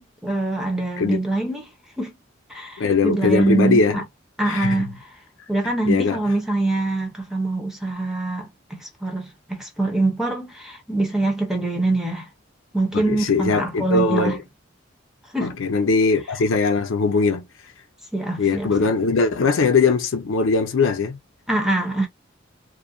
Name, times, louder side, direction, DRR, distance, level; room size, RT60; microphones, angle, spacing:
voice 1, 0.0-1.6 2.0-2.1 2.5-4.0 4.4-5.0 5.5-12.3 12.7-14.4 15.3-15.5 18.1-18.9 21.5-22.1, right 2 dB, ahead, 0.7 m, -24 dB
voice 2, 2.8-4.0 4.5-4.9 5.9-6.2 12.9-14.4 15.4-17.5 18.4-21.2, left 4 dB, 80° left, 0.5 m, -20 dB
2.5 x 2.2 x 2.5 m
head